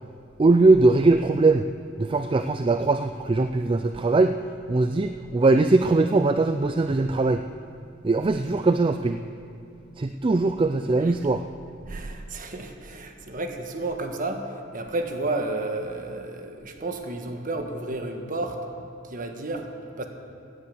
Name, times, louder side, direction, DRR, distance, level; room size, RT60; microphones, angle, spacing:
voice 1, 0.4-1.7 2.0-4.4 4.7-7.4 8.0-9.2 10.0-11.4, right 3 dB, 25° right, 8 dB, 0.4 m, -21 dB
voice 2, 11.9-18.6 19.0-19.7 20.0-20.1, right 2 dB, 45° right, 5 dB, 1.4 m, -32 dB
16.5 x 9.8 x 7.2 m, 2.4 s
head